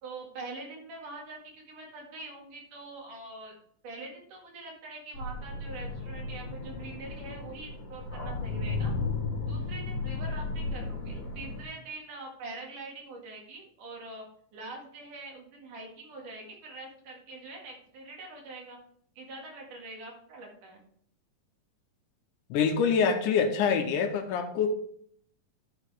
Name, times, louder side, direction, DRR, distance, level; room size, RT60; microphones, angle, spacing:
voice 1, 0.0-3.5 3.8-8.9 9.5-14.2 14.5-18.8 19.2-20.8, right 2 dB, 65° right, 0 dB, 3.5 m, -44 dB
sound 1, 5.1-11.6, left 3 dB, 50° left, 3.0 m, -34 dB
voice 2, 22.5-24.7, left 6 dB, 75° left, 6 dB, 2.1 m, -25 dB
11.5 x 6.3 x 3.5 m, 0.63 s
omnidirectional pair, 4.0 m